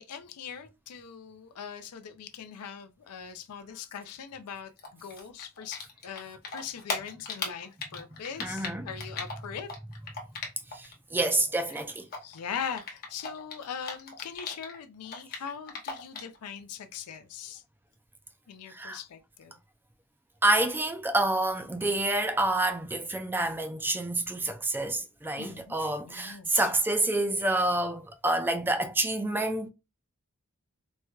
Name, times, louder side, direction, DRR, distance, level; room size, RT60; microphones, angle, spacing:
voice 1, 0.0-4.7 5.0-9.7 12.2-17.6 18.5-19.6 25.4-25.7 26.0-26.7, left 7 dB, 85° left, 0.4 m, -41 dB
Typing, 4.8-6.2 6.4-10.9 11.2-14.8 15.0-16.4, left 4 dB, 45° left, 0.9 m, -37 dB
voice 2, 8.4-8.9 10.7-12.1 18.7-19.0 20.4-29.7, right 2 dB, 10° right, 0.3 m, -28 dB
4.1 x 2.2 x 2.3 m
head